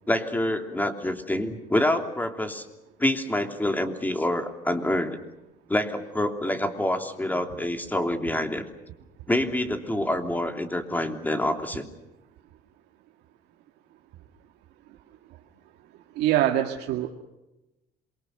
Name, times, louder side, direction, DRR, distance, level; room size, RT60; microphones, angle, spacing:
voice 1, 0.1-2.6 3.0-5.2 5.7-8.6 9.3-11.9, left 1 dB, 10° left, 5 dB, 3.1 m, -26 dB
voice 2, 16.2-17.1, right 13 dB, 90° right, 2 dB, 2.0 m, -23 dB
27.5 x 23.5 x 6.6 m, 0.96 s
cardioid pair, 110°, 17 cm